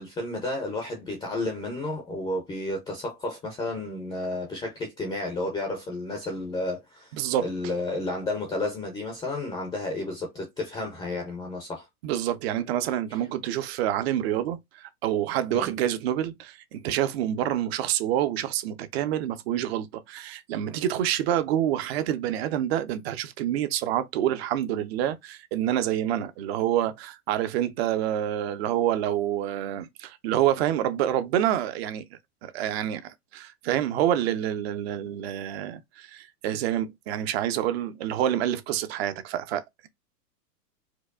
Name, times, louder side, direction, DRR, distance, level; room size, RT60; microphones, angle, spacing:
voice 1, 0.0-7.1 7.4-11.9 15.5-15.7, left 2 dB, 10° left, 0.5 m, -32 dB
voice 2, 7.1-7.5 12.0-32.0 32.4-39.9, right 11 dB, 40° right, 0.6 m, -27 dB
4.5 x 2.2 x 2.4 m
hypercardioid pair, 125°, 48 cm